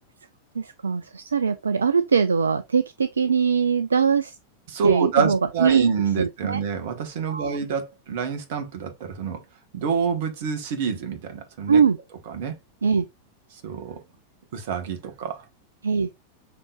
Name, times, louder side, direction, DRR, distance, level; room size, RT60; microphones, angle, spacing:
voice 1, 0.6-4.3 4.8-5.9 6.2-6.6 7.3-7.6 11.7-12.0 12.8-13.0 15.8-16.1, right 6 dB, 75° right, 0.4 m, -21 dB
voice 2, 4.7-9.4 9.7-11.8 12.3-12.6 13.6-14.0 14.5-15.4, right 6 dB, 55° right, 1.2 m, -27 dB
5.9 x 3.8 x 2.4 m
figure-of-eight pair, 90°, 0 cm